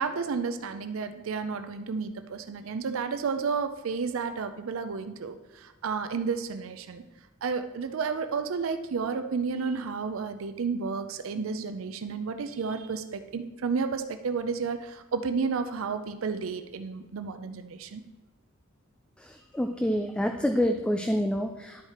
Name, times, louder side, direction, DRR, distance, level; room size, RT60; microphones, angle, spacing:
voice 1, 0.0-7.0 7.4-18.0, right 5 dB, 85° right, 8 dB, 0.5 m, -31 dB
voice 2, 19.2-21.9, equal, 5° left, 4 dB, 0.3 m, -27 dB
10.5 x 4.8 x 4.3 m, 1.1 s
head